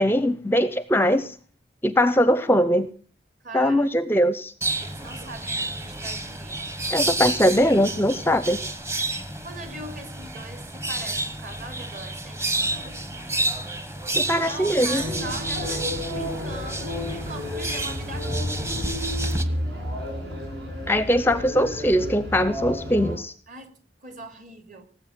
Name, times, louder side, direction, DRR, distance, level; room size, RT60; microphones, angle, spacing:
voice 1, 0.0-1.3 1.8-2.9 3.5-4.5 6.9-8.6 14.1-15.0 20.9-23.3, equal, 10° left, 14 dB, 0.6 m, -21 dB
voice 2, 3.4-3.9 4.8-7.0 9.4-13.4 14.4-18.6 23.5-23.7 24.0-24.8, right 2 dB, 45° right, 7 dB, 2.9 m, -41 dB
sound 1, 4.6-19.4, right 2 dB, 15° right, 1.1 m, -30 dB
sound 2, 15.0-23.2, left 1 dB, 70° right, 7.0 m, -31 dB
18.5 x 7.9 x 7.8 m, 0.41 s
head